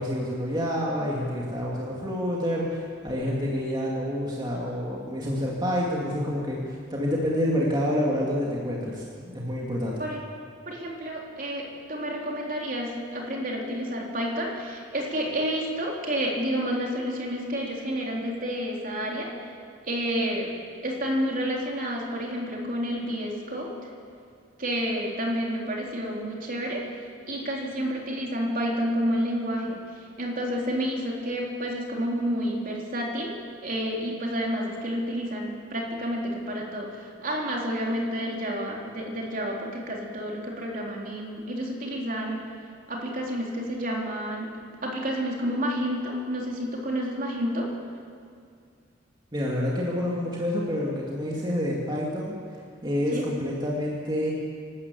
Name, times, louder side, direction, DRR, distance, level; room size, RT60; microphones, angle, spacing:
voice 1, 0.0-10.0 49.3-52.4 52.8-54.3, equal, 25° right, -4 dB, 2.4 m, -28 dB
voice 2, 10.7-19.3 19.9-20.5 20.8-23.7 24.6-26.8 27.3-29.8 30.2-33.3 33.6-42.4 42.9-44.5 44.8-47.7 53.1-53.2, equal, 45° right, -2 dB, 3.7 m, -30 dB
26.5 x 12.5 x 8.4 m, 2.2 s
head